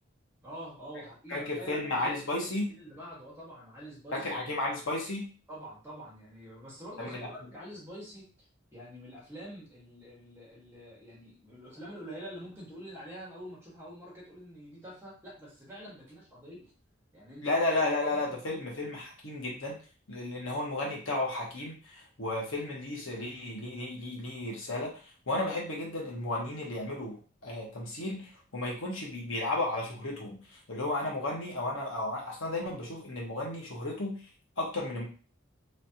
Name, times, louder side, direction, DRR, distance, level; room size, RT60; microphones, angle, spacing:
voice 1, 0.4-2.1 2.8-4.3 5.5-16.7 17.1-17.6 18.1-18.4, equal, 10° right, -6 dB, 1.5 m, -46 dB
voice 2, 1.3-2.7 4.1-5.3 7.0-7.3 17.4-19.8 20.1-24.9 25.3-34.1 34.6-35.0, left 2 dB, 75° left, -2 dB, 1.2 m, -33 dB
3.3 x 3.2 x 2.8 m, 0.37 s
head